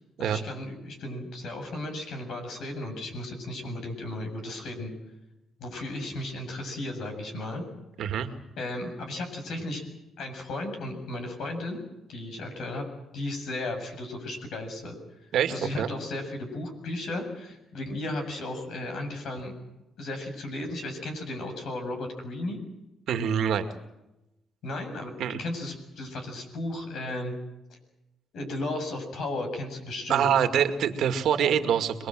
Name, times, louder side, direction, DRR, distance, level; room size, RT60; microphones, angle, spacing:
voice 1, 0.2-4.9 5.6-7.6 8.6-9.8 10.2-11.8 12.1-12.8 13.1-14.9 15.5-19.6 20.0-22.6 24.6-27.3 27.7-27.8 28.3-30.3, left 1 dB, 75° left, 5 dB, 7.4 m, -35 dB
voice 2, 15.3-15.9 23.1-23.7 25.2-25.4 30.1-32.1, right 8 dB, 75° right, 7 dB, 2.2 m, -25 dB
26.0 x 20.5 x 7.8 m, 0.94 s
cardioid pair, 90°, 0 cm